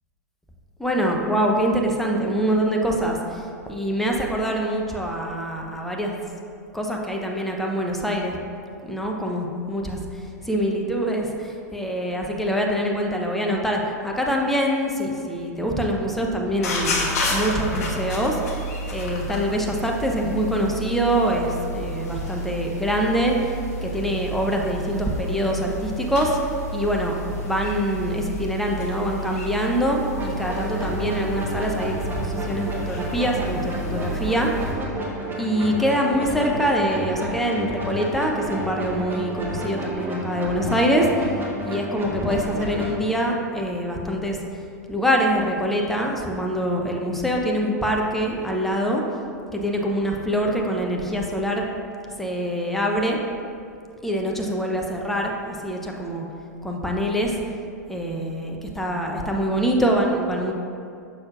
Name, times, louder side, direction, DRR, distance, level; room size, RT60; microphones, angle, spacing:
voice 1, 0.8-6.2 6.7-8.4 8.8-18.4 18.9-23.5 23.8-26.4 26.7-27.1 27.4-34.5 35.4-41.1 41.6-44.4 44.9-49.0 49.5-51.6 52.2-53.2 54.0-55.3 55.6-56.3 56.6-57.4 57.9-60.5, equal, 5° left, 0 dB, 0.7 m, -24 dB
sound 1, 16.5-34.7, equal, 65° left, 1.1 m, -31 dB
sound 2, 30.1-42.9, equal, 25° right, 1.3 m, -31 dB
6.3 x 6.0 x 2.5 m, 2.4 s
hypercardioid pair, 95°, 9 cm